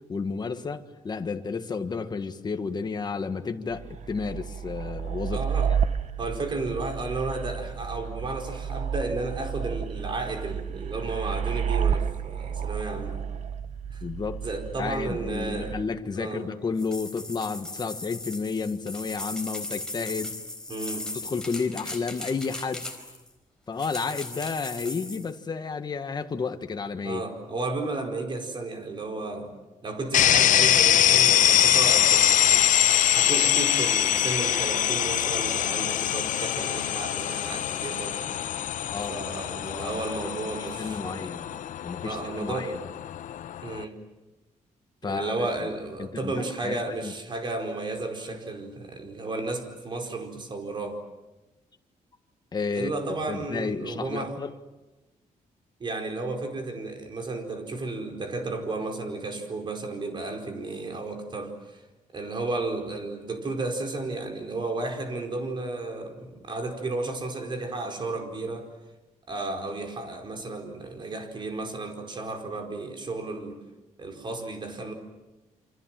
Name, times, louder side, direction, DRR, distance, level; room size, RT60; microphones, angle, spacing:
voice 1, 0.1-5.4 5.7-5.8 14.0-14.4 14.8-20.3 21.2-22.8 23.7-27.2 38.9-39.1 39.6-41.4 41.8-42.8 45.0-45.3 46.0-47.1 52.5-52.9 53.3-54.5, left 5 dB, 30° left, 7 dB, 1.6 m, -32 dB
sound 1, 3.7-15.8, right 7 dB, 60° right, 1.1 m, -31 dB
voice 2, 5.3-5.7 6.2-13.3 13.9-14.0 14.4-15.7 16.2-16.5 20.7-21.1 27.0-29.5 29.8-32.7 33.1-38.3 39.1-41.6 42.0-42.8 43.6-44.0 45.0-51.0 52.7-54.4 55.8-61.8 62.1-68.7 69.3-73.6 74.0-74.9, right 2 dB, 35° right, 4 dB, 4.6 m, -33 dB
sound 2, 16.8-23.3 23.8-25.3, left 2 dB, 5° left, 4.3 m, -37 dB
sound 3, 30.1-43.8, left 11 dB, 75° left, 0.9 m, -23 dB
28.5 x 26.0 x 7.6 m, 1.1 s
cardioid pair, 145°, 14 cm